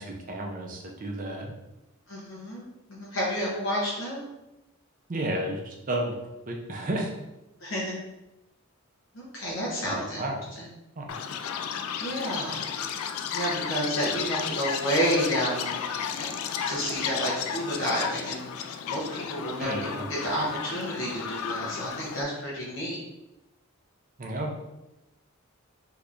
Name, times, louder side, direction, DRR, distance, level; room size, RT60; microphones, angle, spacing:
voice 1, 0.0-1.5 5.1-6.2 6.5-7.1 9.8-10.4 11.0-11.2 19.6-20.1 24.2-24.5, right 1 dB, 40° right, 1 dB, 0.4 m, -32 dB
voice 2, 2.1-4.3 7.6-8.0 9.1-10.2 10.6-10.7 12.0-12.7 13.3-15.8 16.2-16.3 16.6-23.0, equal, 60° left, -5 dB, 0.7 m, -30 dB
Chirp tweet, 11.1-22.2, left 7 dB, 80° left, 0.3 m, -33 dB
3.4 x 2.8 x 2.4 m, 0.96 s
head